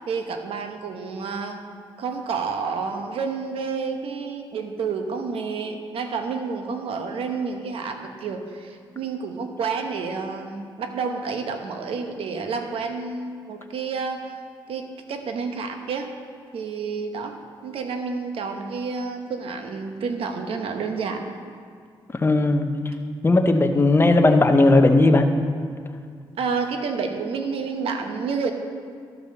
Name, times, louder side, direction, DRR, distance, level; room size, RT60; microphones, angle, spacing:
voice 1, 0.1-1.6 2.0-14.3 14.7-16.1 16.5-17.4 17.6-21.2 26.4-28.5, right 5 dB, 75° right, 5 dB, 1.0 m, -29 dB
voice 2, 22.2-22.7 23.2-25.3, left 2 dB, 25° left, 6 dB, 0.8 m, -16 dB
12.0 x 5.2 x 6.6 m, 2.1 s
cardioid pair, 90°, 10 cm